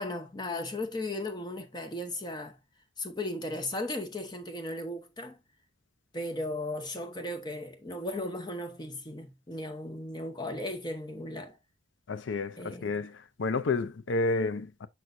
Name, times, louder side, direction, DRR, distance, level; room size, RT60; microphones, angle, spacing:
voice 1, 0.0-2.6 3.0-5.4 6.1-11.6 12.6-12.9, left 1 dB, 20° left, 0.9 m, -36 dB
voice 2, 12.1-14.9, left 3 dB, 75° left, 0.5 m, -30 dB
6.1 x 5.9 x 2.6 m
head